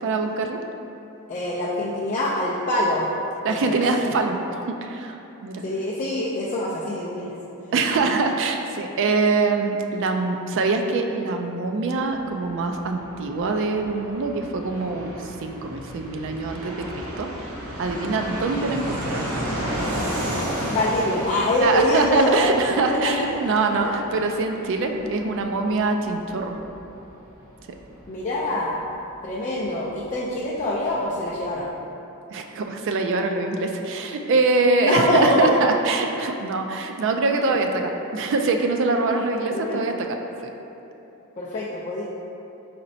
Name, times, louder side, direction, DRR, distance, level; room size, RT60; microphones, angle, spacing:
voice 1, 0.0-0.6 3.4-5.6 7.7-17.5 17.8-19.3 21.6-26.6 32.3-40.1 40.4-40.5, right 3 dB, 60° right, 4 dB, 0.3 m, -24 dB
voice 2, 1.3-3.1 3.5-3.8 5.6-7.4 8.0-8.1 20.7-22.5 22.9-23.4 23.8-23.9 25.0-25.1 28.1-28.8 29.2-31.7 34.8-35.5 37.5-37.6 39.1-39.9 41.4-42.0, left 1 dB, 35° left, -7 dB, 0.4 m, -24 dB
Fixed-wing aircraft airplane, 12.0-30.4 30.6-30.7 30.9-31.6, equal, 80° right, 0.8 m, -33 dB
4.2 x 4.0 x 2.6 m, 2.9 s
head